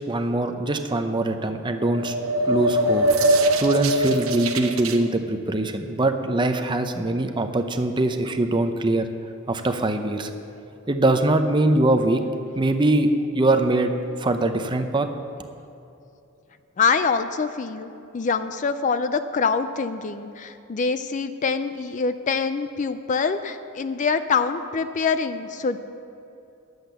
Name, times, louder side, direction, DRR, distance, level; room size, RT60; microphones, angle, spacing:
voice 1, 0.1-2.1 2.5-3.1 3.5-9.0 9.5-10.3 10.9-12.2 12.5-13.1 13.3-13.9 14.2-15.1, right 2 dB, 20° right, 7 dB, 0.6 m, -22 dB
sound 1, 1.7-5.0, right 1 dB, 70° right, 0.8 m, -22 dB
voice 2, 16.8-25.8, left 5 dB, 35° left, 10 dB, 0.4 m, -25 dB
10.5 x 8.0 x 6.8 m, 2.8 s
head